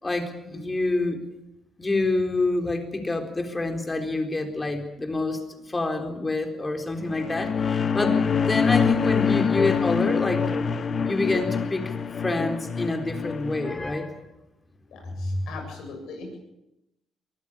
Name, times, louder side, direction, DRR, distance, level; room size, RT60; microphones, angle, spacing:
voice 1, 0.0-1.2 1.8-5.4 5.7-10.4 11.0-11.9 12.2-14.2 15.2-15.5, left 2 dB, 20° left, 5 dB, 4.0 m, -27 dB
sound 1, 7.1-13.7, left 6 dB, 45° left, 1.1 m, -25 dB
voice 2, 14.9-16.4, left 3 dB, 80° left, 2 dB, 7.8 m, -40 dB
22.5 x 15.0 x 8.8 m, 0.90 s
cardioid pair, 90°, 0 cm